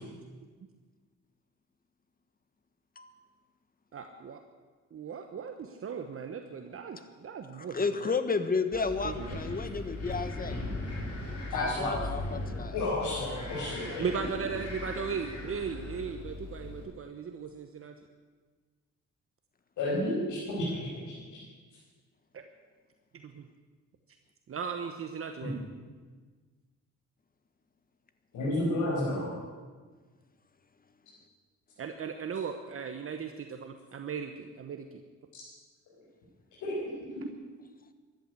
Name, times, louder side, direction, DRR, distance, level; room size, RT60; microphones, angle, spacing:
voice 1, 3.9-4.4 4.9-8.1 8.7-9.4 13.6-17.9 22.3-22.4 23.1-23.4 24.5-25.6 31.8-35.0, right 6 dB, 45° right, 6 dB, 1.1 m, -37 dB
voice 2, 7.5-10.6 11.5-12.7, left 4 dB, 30° left, 10 dB, 1.4 m, -32 dB
Wind, 8.7-16.8, left 2 dB, 55° left, 5.5 m, -39 dB
voice 3, 11.5-11.9 12.7-14.0 19.8-21.4 25.4-25.5 28.3-29.3 36.6-36.8, left 1 dB, 80° left, -7 dB, 5.7 m, -31 dB
14.5 x 11.5 x 8.1 m, 1.5 s
cardioid pair, 90°, 30 cm